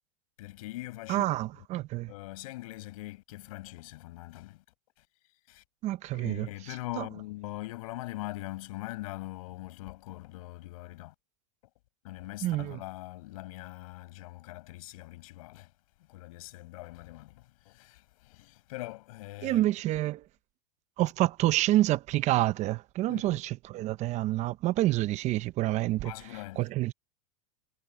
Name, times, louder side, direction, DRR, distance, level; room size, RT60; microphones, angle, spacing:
voice 1, 0.4-1.3 2.1-4.6 5.5-5.6 6.1-11.1 12.0-15.7 16.1-19.6 23.1-23.4 26.0-26.7, left 19 dB, 65° left, 6.1 m, -42 dB
voice 2, 1.1-2.1 5.8-6.5 7.0-7.1 12.4-12.8 19.4-20.2 21.0-26.1 26.6-26.9, right 16 dB, 35° right, 0.9 m, -28 dB
supercardioid pair, 130°, 19 cm